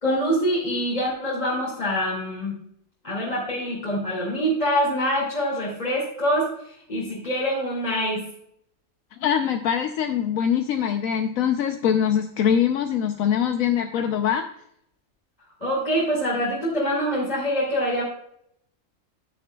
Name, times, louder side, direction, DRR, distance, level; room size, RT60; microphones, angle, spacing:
voice 1, 0.0-2.6 3.0-8.2 15.6-18.0, equal, 30° left, -5 dB, 2.7 m, -25 dB
voice 2, 9.2-14.5, left 8 dB, 80° left, 6 dB, 1.1 m, -23 dB
10.0 x 10.0 x 2.3 m, 0.71 s
omnidirectional pair, 1.4 m